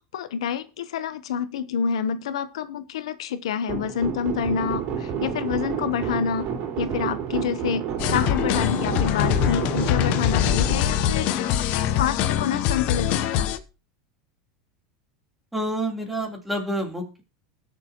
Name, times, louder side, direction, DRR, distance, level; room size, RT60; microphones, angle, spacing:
voice 1, 0.1-6.5 6.8-13.5, left 7 dB, 90° left, 0.9 m, -28 dB
sound 1, 3.7-12.0, right 8 dB, 50° right, 3.8 m, -30 dB
sound 2, 8.0-13.6, left 11 dB, 55° left, 1.0 m, -23 dB
voice 2, 15.5-17.2, right 1 dB, 5° right, 3.3 m, -28 dB
20.0 x 6.9 x 2.9 m
supercardioid pair, 115°, 3 cm